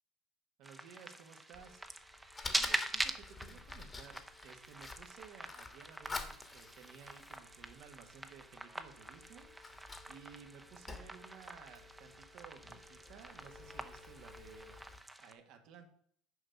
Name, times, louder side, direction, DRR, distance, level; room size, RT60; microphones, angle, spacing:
sound 1, 0.6-15.3, right 1 dB, 10° right, 0.8 m, -44 dB
voice 1, 0.6-1.8 2.2-15.9, right 7 dB, 65° right, 6 dB, 1.5 m, -57 dB
Fire, 1.5-15.0, left 3 dB, 25° left, 1.4 m, -49 dB
7.1 x 5.0 x 6.6 m, 0.63 s
supercardioid pair, 90°, 0 cm